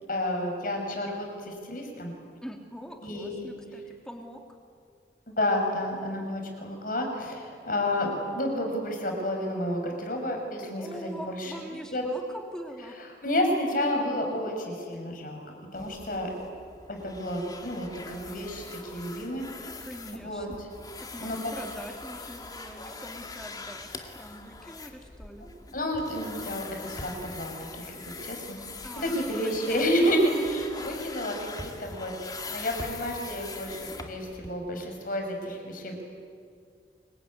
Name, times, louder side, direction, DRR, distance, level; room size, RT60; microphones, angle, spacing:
voice 1, 0.1-2.1 3.0-3.5 5.3-12.1 13.2-15.4 15.7-16.3 16.9-19.5 20.1-20.5 21.2-21.4 25.7-28.6 28.9-36.0, left 1 dB, 50° left, 3 dB, 5.9 m, -30 dB
voice 2, 2.4-4.4 10.8-13.0 19.8-20.7 21.0-23.9 24.1-25.5 28.8-29.3 29.7-30.4, equal, 5° left, 3 dB, 3.1 m, -43 dB
sound 1, 15.7-34.5, left 3 dB, 20° left, 2.1 m, -42 dB
26.0 x 23.0 x 9.8 m, 2.2 s
head